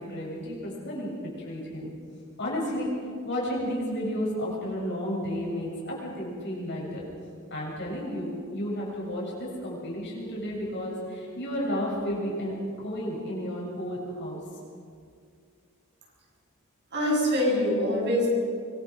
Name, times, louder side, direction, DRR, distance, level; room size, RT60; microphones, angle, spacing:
voice 1, 0.0-1.9 2.4-2.9 3.2-7.1 7.5-14.4, equal, 55° left, -4 dB, 7.7 m, -32 dB
voice 2, 16.9-18.3, equal, 55° right, -2 dB, 7.4 m, -24 dB
25.0 x 24.0 x 5.3 m, 2.2 s
head